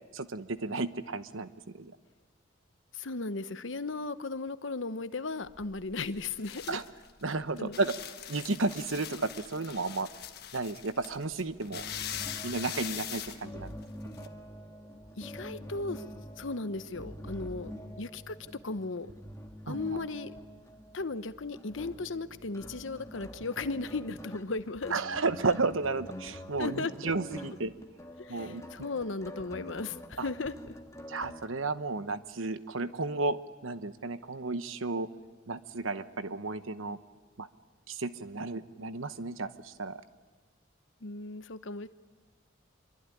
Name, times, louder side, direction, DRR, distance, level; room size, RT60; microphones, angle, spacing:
voice 1, 0.1-1.5 1.8-1.9 6.7-6.8 7.2-7.9 8.3-10.1 10.5-11.9 12.4-13.7 19.7-20.0 24.9-27.7 28.3-28.6 30.2-30.3 31.1-33.4 33.6-35.1 35.5-37.0 37.4-37.5 37.9-40.0, right 3 dB, 90° right, 12 dB, 1.1 m, -33 dB
voice 2, 2.9-6.8 7.6-7.8 15.2-16.0 16.4-17.7 18.0-18.4 18.6-19.1 19.7-20.3 20.9-24.9 26.6-26.9 28.2-30.7 41.0-41.9, left 3 dB, 75° left, 12 dB, 1.0 m, -36 dB
sound 1, 5.5-14.3, left 10 dB, 50° left, 1.4 m, -42 dB
sound 2, 11.7-31.5, equal, 15° left, 1.5 m, -46 dB
26.0 x 23.0 x 9.9 m, 1.3 s
head